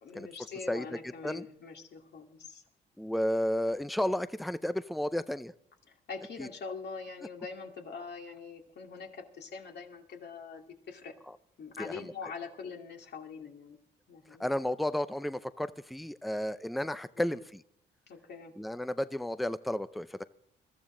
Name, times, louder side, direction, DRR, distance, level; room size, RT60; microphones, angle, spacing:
voice 1, 0.0-2.6 5.9-11.1 11.6-13.8 14.1-14.5 17.2-17.4 18.1-18.5, left 5 dB, 55° left, 2 dB, 2.4 m, -44 dB
voice 2, 3.0-5.5 6.4-6.5 11.8-12.1 14.4-17.6 18.6-20.2, left 1 dB, ahead, 14 dB, 0.5 m, -32 dB
21.5 x 14.0 x 3.8 m, 0.72 s
cardioid pair, 90°, 20 cm